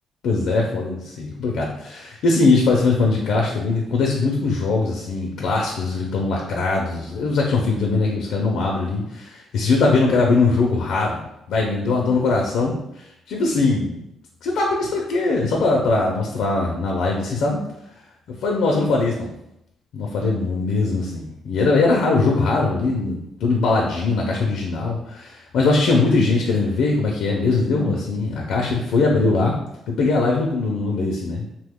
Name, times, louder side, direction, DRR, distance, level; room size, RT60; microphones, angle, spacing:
voice 1, 0.2-11.2 11.5-14.0 14.4-17.6 18.3-19.3 19.9-29.6 29.9-31.4, left 3 dB, 75° left, 0 dB, 0.4 m, -21 dB
2.8 x 2.1 x 3.5 m, 0.82 s
cardioid pair, 120°, 0 cm